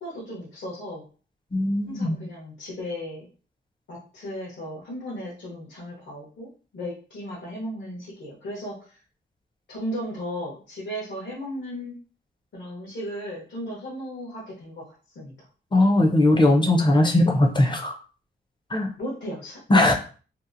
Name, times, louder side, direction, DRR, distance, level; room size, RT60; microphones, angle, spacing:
voice 1, 0.0-1.0 1.9-3.3 3.9-8.8 9.7-11.9 12.5-15.5 19.0-19.8, equal, 65° left, -5 dB, 0.9 m, -35 dB
voice 2, 1.5-2.2 15.7-17.9 18.7-18.9 19.7-19.9, left 1 dB, 25° left, 2 dB, 0.5 m, -19 dB
2.7 x 2.3 x 2.5 m, 0.38 s
wide cardioid pair, 165°, 20 cm